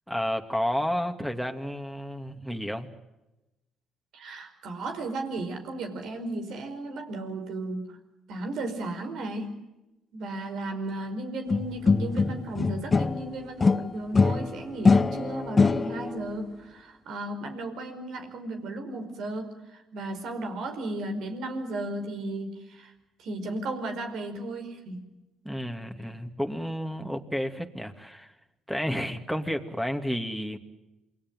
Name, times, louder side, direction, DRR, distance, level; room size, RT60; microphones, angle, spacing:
voice 1, 0.1-2.9 25.4-28.3 28.7-30.6, equal, ahead, 6 dB, 2.6 m, -31 dB
voice 2, 4.1-8.0 8.3-9.6 10.1-22.9 23.2-25.0, right 2 dB, 70° right, 6 dB, 5.1 m, -35 dB
sound 1, 11.5-13.3 13.6-16.2, left 4 dB, 30° left, 0.8 m, -23 dB
28.0 x 21.0 x 7.6 m, 0.99 s
hypercardioid pair, 60°, 0 cm